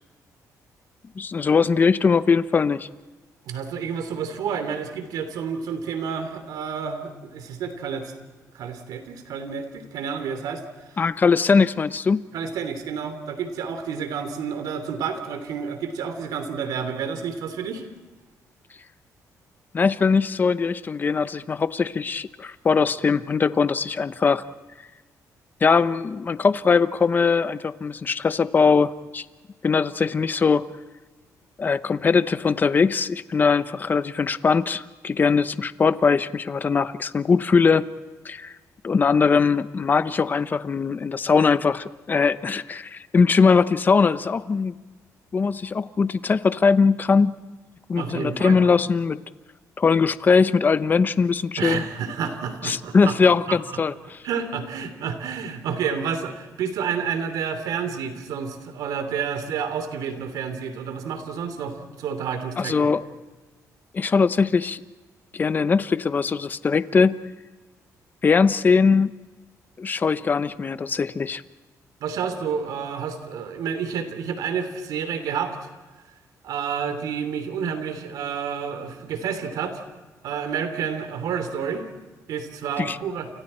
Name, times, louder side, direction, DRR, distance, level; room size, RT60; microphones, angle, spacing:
voice 1, 1.2-2.9 11.0-12.2 19.7-24.4 25.6-29.2 29.6-30.6 31.6-37.9 38.2-38.5 38.8-44.8 45.3-47.3 47.9-49.2 49.8-51.8 52.6-53.9 62.6-63.0 63.9-64.8 65.3-67.2 68.2-69.1 69.8-71.4 82.8-83.0, left 5 dB, 30° left, 13 dB, 0.8 m, -21 dB
voice 2, 3.5-8.1 8.5-10.6 12.3-17.8 48.0-48.6 51.6-53.6 54.2-62.9 72.0-75.7 76.4-79.8 80.2-81.8 82.3-83.3, right 6 dB, 85° right, 8 dB, 3.0 m, -30 dB
29.5 x 29.0 x 4.4 m, 1.3 s
cardioid pair, 135°, 6 cm